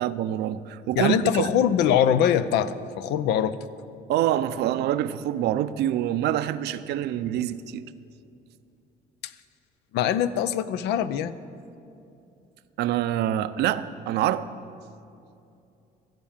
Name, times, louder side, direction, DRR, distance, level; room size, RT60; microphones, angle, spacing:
voice 1, 0.0-1.5 4.1-7.8 12.8-14.5, right 12 dB, 75° right, 0.5 m, -26 dB
voice 2, 1.0-3.6 9.2-9.3 9.9-11.4, left 9 dB, 85° left, 0.6 m, -23 dB
15.0 x 7.6 x 7.2 m
cardioid pair, 110°, 17 cm